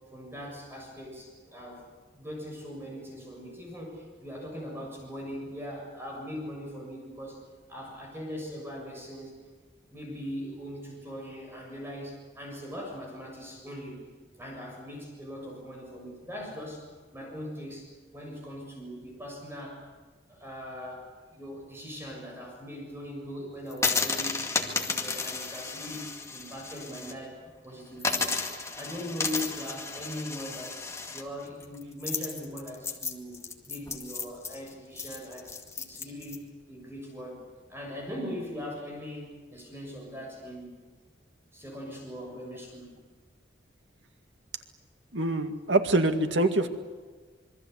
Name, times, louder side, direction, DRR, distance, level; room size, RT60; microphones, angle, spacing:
voice 1, 0.1-1.9 2.1-7.4 7.7-9.3 9.9-14.0 14.4-16.9 17.1-19.9 20.3-24.3 24.6-27.4 27.6-28.3 28.8-36.4 36.7-37.4 37.7-40.8 41.5-42.9, equal, 15° right, 0 dB, 7.0 m, -40 dB
sound 1, 23.7-27.1 27.5-27.6 28.0-36.4, left 4 dB, 15° left, 2.2 m, -33 dB
voice 2, 45.1-46.7, right 2 dB, 80° right, 6 dB, 2.0 m, -24 dB
26.5 x 23.5 x 8.2 m, 1.4 s
head